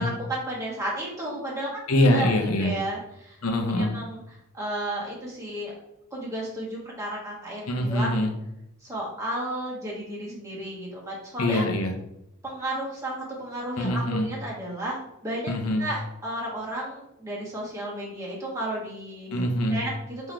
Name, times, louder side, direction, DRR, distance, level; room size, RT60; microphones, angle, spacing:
voice 1, 0.0-1.8 2.1-3.4 3.8-4.2 4.5-5.7 6.1-8.2 8.8-11.6 12.4-15.0 15.2-15.5 15.8-19.3 19.7-20.3, right 1 dB, 15° right, -5 dB, 1.5 m, -33 dB
voice 2, 1.9-2.7 3.4-3.9 7.7-8.3 11.4-11.9 13.8-14.3 15.5-15.9 19.3-19.8, left 1 dB, 85° left, 4 dB, 0.8 m, -24 dB
3.8 x 3.1 x 4.4 m, 0.83 s
head